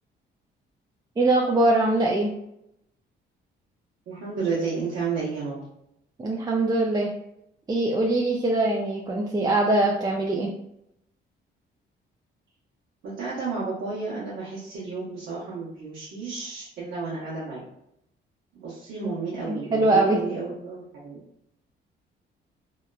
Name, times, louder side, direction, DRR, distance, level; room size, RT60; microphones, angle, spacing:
voice 1, 1.2-2.3 6.2-7.1 7.7-10.5 19.5-20.2, right 2 dB, 20° right, -2 dB, 0.4 m, -22 dB
voice 2, 4.1-5.6 13.0-17.6 18.5-21.2, right 4 dB, 80° right, -9 dB, 0.9 m, -32 dB
2.8 x 2.3 x 2.2 m, 0.79 s
cardioid pair, 90°, 20 cm